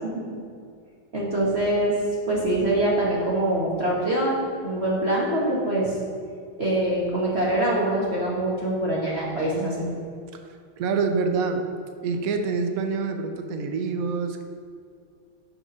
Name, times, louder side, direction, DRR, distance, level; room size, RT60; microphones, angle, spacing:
voice 1, 1.1-1.9 2.3-5.9 6.6-9.9, right 1 dB, 35° right, -5 dB, 1.3 m, -24 dB
voice 2, 10.8-11.6 12.0-14.4, right 4 dB, 75° right, 6 dB, 0.8 m, -26 dB
6.5 x 6.1 x 5.5 m, 2.2 s
omnidirectional pair, 2.3 m